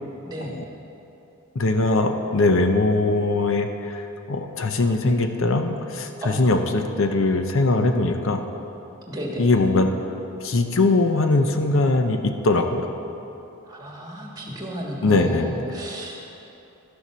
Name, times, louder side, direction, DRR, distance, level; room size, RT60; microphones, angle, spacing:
voice 1, 1.5-8.4 9.4-9.9 10.4-12.9 15.0-15.6, left 2 dB, 60° left, 6 dB, 0.6 m, -21 dB
voice 2, 9.1-9.5 13.7-16.3, right 1 dB, 15° right, -2 dB, 1.5 m, -33 dB
11.5 x 7.0 x 6.1 m, 2.9 s
head